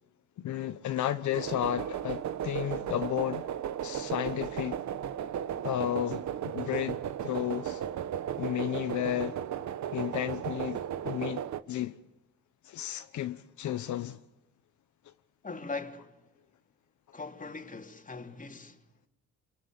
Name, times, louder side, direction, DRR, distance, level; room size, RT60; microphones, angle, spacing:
voice 1, 0.4-3.5 3.8-4.8 5.6-7.8 8.4-9.4 9.9-11.4 11.7-12.0 12.6-14.2, left 12 dB, 70° left, 1.2 m, -33 dB
sound 1, 1.3-11.6, right 10 dB, 65° right, 1.2 m, -35 dB
voice 2, 15.4-16.1 17.1-18.8, left 3 dB, 25° left, 3.2 m, -40 dB
28.0 x 22.0 x 8.4 m
cardioid pair, 90°, 30 cm